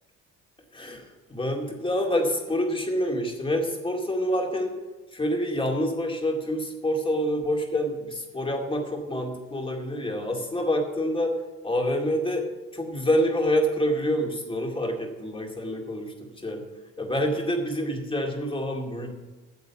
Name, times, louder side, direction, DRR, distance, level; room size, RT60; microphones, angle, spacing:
voice 1, 0.7-4.7 5.1-11.3 11.6-12.4 12.7-16.6 17.0-19.1, equal, 15° left, 2 dB, 2.2 m, -27 dB
9.4 x 7.4 x 7.0 m, 1.3 s
cardioid pair, 110°, 33 cm